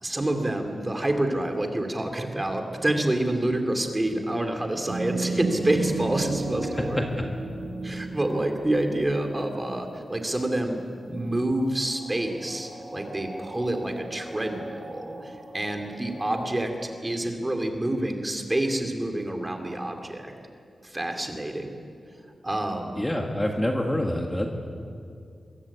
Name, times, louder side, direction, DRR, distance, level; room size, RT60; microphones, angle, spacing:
voice 1, 0.0-7.1 7.8-10.8 11.1-20.3 20.8-21.8 22.4-23.0, right 1 dB, 15° right, 4 dB, 2.6 m, -28 dB
sound 1, 4.9-9.2 11.2-11.3 11.7-16.5, right 3 dB, 55° right, 5.3 m, -35 dB
voice 2, 23.0-24.5, left 1 dB, 10° left, 1 dB, 1.7 m, -26 dB
25.0 x 23.0 x 8.4 m, 2.4 s
wide cardioid pair, 170°, 0 cm